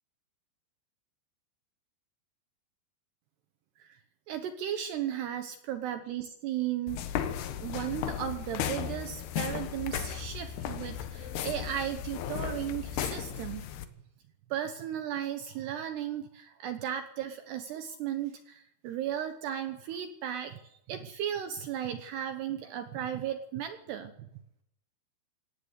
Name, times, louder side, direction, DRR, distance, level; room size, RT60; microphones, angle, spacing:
voice 1, 4.3-7.1 7.6-13.7 14.5-24.1, right 10 dB, 75° right, 8 dB, 2.6 m, -35 dB
sound 1, 6.9-13.8, left 9 dB, 70° left, 2.8 m, -35 dB
18.5 x 18.0 x 8.2 m, 0.78 s
omnidirectional pair, 5.9 m